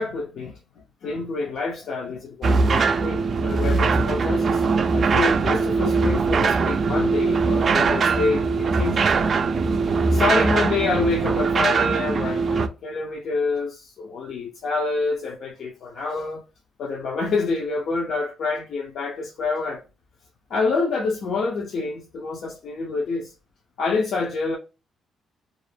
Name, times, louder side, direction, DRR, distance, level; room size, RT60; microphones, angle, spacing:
voice 1, 0.0-4.6 4.9-9.4 10.1-16.4 16.8-19.8 20.5-23.3 23.8-24.6, left 3 dB, 65° left, 0.5 m, -27 dB
sound 1, 2.4-12.7, right 4 dB, 50° right, 0.3 m, -21 dB
2.4 x 2.0 x 3.2 m
cardioid pair, 90°, 0 cm